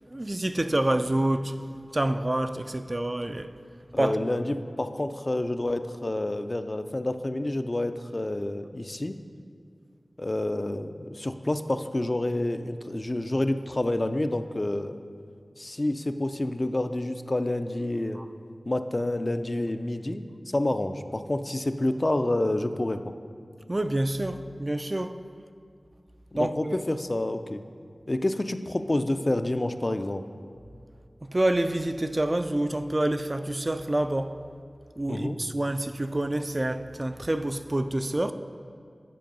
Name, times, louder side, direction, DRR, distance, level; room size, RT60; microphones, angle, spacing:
voice 1, 0.0-1.6 1.9-3.5 4.0-4.1 18.2-18.3 23.7-25.2 26.4-26.7 31.2-34.4 35.0-38.3, right 1 dB, 35° right, 0.3 m, -27 dB
voice 2, 3.9-9.2 10.2-15.0 15.6-18.2 18.7-23.0 26.3-27.6 28.1-30.2 35.1-35.4, left 1 dB, 40° left, 0.3 m, -28 dB
7.6 x 4.6 x 5.3 m
wide cardioid pair, 45°, 0 cm